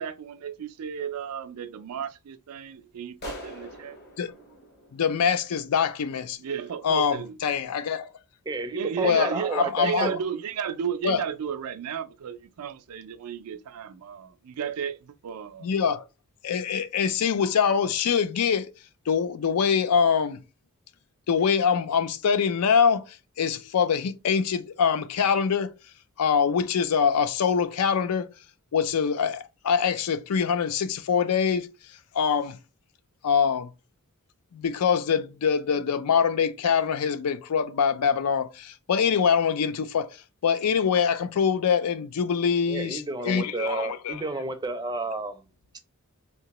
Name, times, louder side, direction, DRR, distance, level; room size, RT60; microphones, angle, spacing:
voice 1, 0.0-4.0 6.4-7.4 8.7-15.7, right 7 dB, 80° right, 0.4 m, -33 dB
sound 1, 3.2-5.8, left 1 dB, 50° left, 0.9 m, -43 dB
voice 2, 4.9-6.4 6.8-8.1 9.0-10.1 11.0-11.2 15.6-16.0 16.4-18.7 19.1-20.4 21.3-23.0 23.4-25.7 26.2-28.3 28.7-31.7 32.1-32.6 33.2-33.7 34.5-40.1 40.4-44.2, left 6 dB, 90° left, 0.4 m, -24 dB
voice 3, 8.5-10.1 42.7-45.4 45.7-45.8, right 3 dB, 20° right, 0.4 m, -31 dB
3.5 x 2.8 x 2.9 m
head